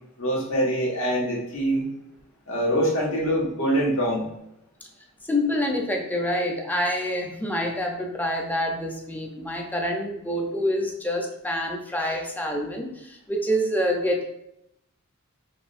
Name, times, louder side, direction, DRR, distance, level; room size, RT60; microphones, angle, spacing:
voice 1, 0.2-1.9 2.5-4.3, equal, 70° left, -4 dB, 1.5 m, -24 dB
voice 2, 5.3-14.2, equal, 10° left, 1 dB, 0.6 m, -27 dB
5.4 x 3.2 x 2.5 m, 0.81 s
head